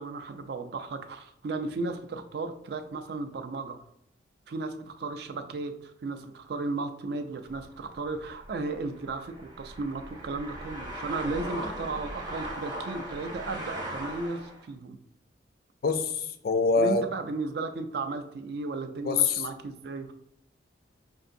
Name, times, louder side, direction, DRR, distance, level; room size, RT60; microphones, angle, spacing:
voice 1, 0.0-3.8 4.5-15.0 16.8-20.1, right 3 dB, 55° right, 7 dB, 0.4 m, -35 dB
sound 1, 7.5-14.6, right 1 dB, 20° right, 0.6 m, -39 dB
voice 2, 15.8-17.0 19.1-19.4, left 4 dB, 50° left, 9 dB, 0.3 m, -25 dB
5.3 x 2.6 x 2.6 m, 0.72 s
head